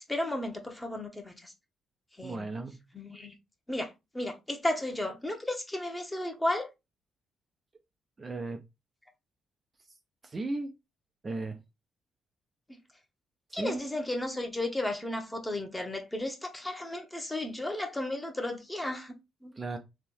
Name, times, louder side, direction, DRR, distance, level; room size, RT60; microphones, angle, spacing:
voice 1, 0.1-1.5 2.1-2.5 2.9-3.3 3.7-6.7 13.5-19.6, left 1 dB, 10° left, 1.3 m, -34 dB
voice 2, 2.2-2.8 8.2-8.6 10.2-10.7 11.2-11.6 13.6-13.8 19.6-19.8, right 3 dB, 30° right, 0.8 m, -35 dB
3.5 x 3.3 x 4.5 m
cardioid pair, 90°, 0 cm